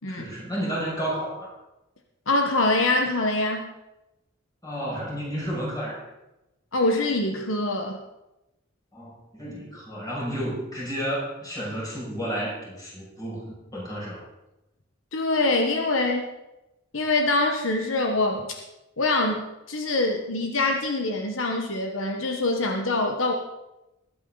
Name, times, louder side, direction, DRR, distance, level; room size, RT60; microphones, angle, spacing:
voice 1, 0.1-1.5 4.6-6.0 8.9-14.2, equal, 20° left, -5 dB, 6.4 m, -31 dB
voice 2, 2.3-3.7 6.7-8.0 15.1-16.3 16.9-18.6 19.0-23.3, left 2 dB, 75° left, 3 dB, 1.3 m, -24 dB
21.5 x 8.9 x 4.0 m, 0.94 s
head